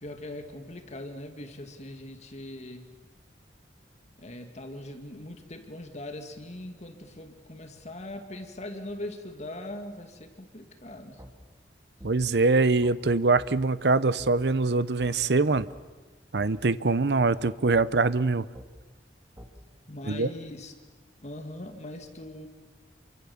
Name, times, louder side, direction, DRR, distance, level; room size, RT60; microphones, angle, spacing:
voice 1, 0.0-2.9 4.2-11.2 19.9-20.7 21.2-22.5, left 1 dB, 40° left, 6 dB, 2.2 m, -41 dB
sound 1, 11.2-11.3 12.0-12.1 12.8-13.0 13.4-13.5 14.2-14.3 15.0-15.1 15.5-15.7 16.4-16.5 17.2-17.3 17.7-17.9 18.5-18.7 19.4-19.5, equal, 20° right, 2.6 m, -46 dB
voice 2, 12.0-15.7 16.3-18.4 20.1-20.3, right 3 dB, 70° right, 16 dB, 0.8 m, -23 dB
28.5 x 24.5 x 7.3 m, 1.3 s
head